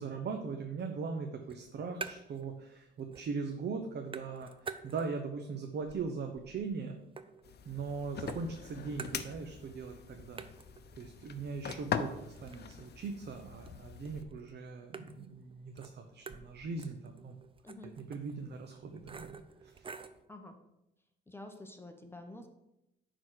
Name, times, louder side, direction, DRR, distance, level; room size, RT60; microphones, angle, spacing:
voice 1, 0.0-7.0 7.6-10.5 11.0-17.4 18.1-19.4 19.6-19.9, right 4 dB, 55° right, 4 dB, 1.0 m, -40 dB
sound 1, 1.4-2.5 2.8-3.5 3.7-5.3 5.7-7.9 8.3-9.7 10.0-10.1 10.4-20.2, right 5 dB, 25° right, 0.6 m, -49 dB
sound 2, 7.4-14.2, left 7 dB, 55° left, 0.8 m, -42 dB
voice 2, 17.6-17.9 20.3-20.6 21.3-22.5, left 2 dB, 10° left, 5 dB, 1.1 m, -48 dB
9.6 x 4.1 x 6.5 m, 0.88 s
cardioid pair, 90°, 20 cm